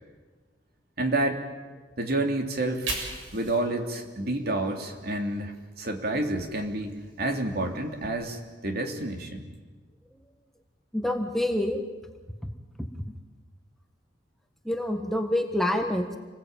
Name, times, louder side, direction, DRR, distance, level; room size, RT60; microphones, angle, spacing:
voice 1, 1.0-1.4 2.0-2.9 3.3-9.5, right 2 dB, 55° right, 4 dB, 3.2 m, -29 dB
Fire, 2.5-5.6 6.0-8.1, right 2 dB, 80° right, 7.4 m, -41 dB
voice 2, 10.9-11.8 12.4-12.5 12.8-12.9 14.6-16.2, left 1 dB, ahead, 4 dB, 1.5 m, -27 dB
27.5 x 20.5 x 9.1 m, 1.3 s
head